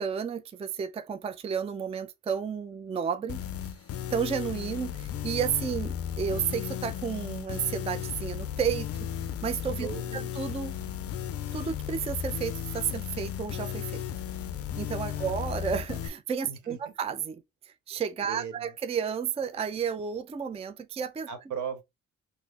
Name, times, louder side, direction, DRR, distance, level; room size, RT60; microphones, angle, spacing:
voice 1, 0.0-3.4 4.1-8.9 9.4-10.7 11.5-14.0 14.8-21.3, right 7 dB, 20° right, 0.4 m, -32 dB
sound 1, 3.3-16.1, left 9 dB, 50° left, 0.4 m, -35 dB
voice 2, 9.8-10.3 15.1-15.5 16.5-16.9 18.3-18.7 21.3-21.8, right 7 dB, 75° right, 1.0 m, -38 dB
3.7 x 2.0 x 3.2 m
cardioid pair, 90°, 30 cm